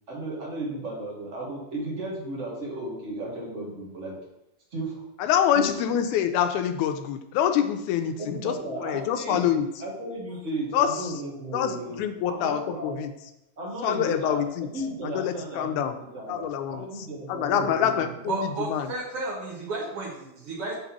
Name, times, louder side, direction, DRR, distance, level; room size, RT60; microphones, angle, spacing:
voice 1, 0.1-4.2 4.7-5.0 5.5-5.7 8.2-9.5 9.8-12.0 12.3-13.0 13.6-18.1, right 1 dB, 30° right, -3 dB, 1.6 m, -34 dB
voice 2, 5.2-9.7 10.7-11.1 11.5-13.1 13.8-14.7 15.0-15.9 16.3-16.8 17.3-18.9, left 9 dB, 85° left, 8 dB, 2.1 m, -26 dB
voice 3, 18.3-20.8, right 3 dB, 55° right, -4 dB, 2.1 m, -32 dB
5.7 x 4.0 x 6.1 m, 0.86 s
omnidirectional pair, 3.4 m